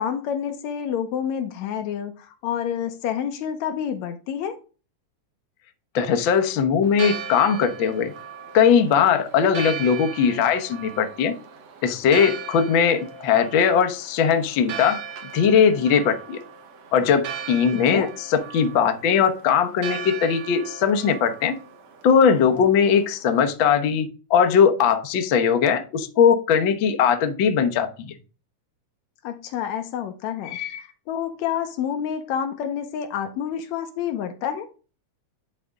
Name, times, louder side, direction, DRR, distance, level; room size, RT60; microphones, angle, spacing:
voice 1, 0.0-4.6 17.7-18.1 29.2-34.7, left 8 dB, 75° left, 8 dB, 2.1 m, -28 dB
voice 2, 5.9-8.1 8.5-11.3 11.8-15.0 15.3-16.4 16.9-21.5 22.0-28.1 30.5-30.8, left 7 dB, 60° left, 7 dB, 1.3 m, -20 dB
Church bell, 6.8-23.5, right 7 dB, 65° right, 2.1 m, -38 dB
10.5 x 4.2 x 3.6 m, 0.34 s
omnidirectional pair, 3.4 m